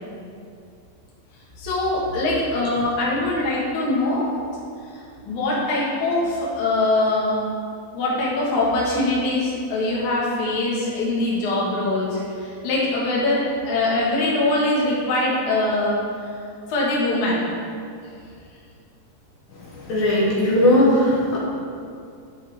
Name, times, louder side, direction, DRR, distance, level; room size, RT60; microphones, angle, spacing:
voice 1, 1.6-4.3 4.9-7.5 7.9-16.0 16.7-17.4, left 2 dB, 60° left, -6 dB, 2.9 m, -22 dB
voice 2, 19.9-21.4, left 1 dB, 75° left, -7 dB, 3.0 m, -18 dB
11.5 x 5.6 x 3.6 m, 2.4 s
omnidirectional pair, 4.2 m